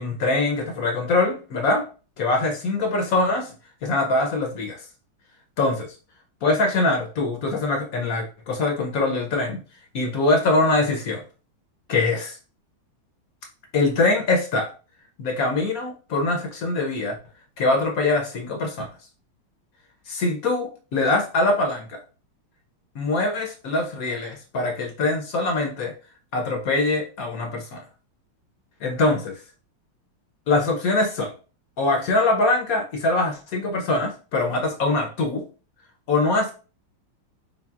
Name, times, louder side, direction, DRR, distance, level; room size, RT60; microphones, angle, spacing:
voice 1, 0.0-1.8 2.2-3.5 3.8-4.8 5.6-5.9 6.4-9.6 9.9-11.2 11.9-12.4 13.7-14.7 15.2-17.2 17.6-18.9 20.1-22.0 22.9-25.9 26.3-27.8 28.8-29.4 30.5-31.3 31.8-35.4 36.1-36.5, left 2 dB, 65° left, 3 dB, 0.8 m, -23 dB
4.2 x 3.9 x 2.4 m, 0.35 s
omnidirectional pair, 2.3 m